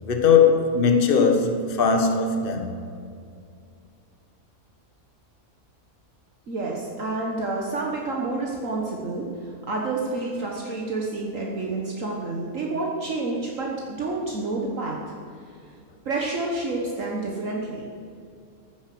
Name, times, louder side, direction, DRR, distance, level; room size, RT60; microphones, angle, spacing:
voice 1, 0.0-2.7, left 5 dB, 40° left, 1.4 m, -19 dB
voice 2, 6.5-13.7 14.0-15.0 16.0-17.9, right 3 dB, 60° right, 1.7 m, -29 dB
13.5 x 9.4 x 7.7 m
omnidirectional pair, 1.5 m